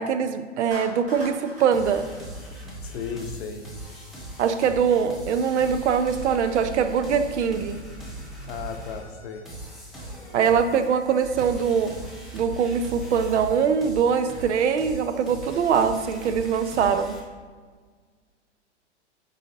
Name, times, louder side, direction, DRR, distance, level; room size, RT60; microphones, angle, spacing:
voice 1, 0.0-2.1 4.4-7.8 10.3-11.9 12.3-17.1, right 7 dB, 75° right, 9 dB, 0.5 m, -23 dB
Clapping, 0.7-3.1, equal, 20° right, 1.0 m, -42 dB
sound 1, 1.7-17.2, right 1 dB, ahead, 0.6 m, -39 dB
voice 2, 2.8-3.6 8.5-9.4, left 6 dB, 60° left, 6 dB, 0.6 m, -35 dB
4.8 x 3.9 x 2.7 m, 1.5 s
hypercardioid pair, 125°, 35 cm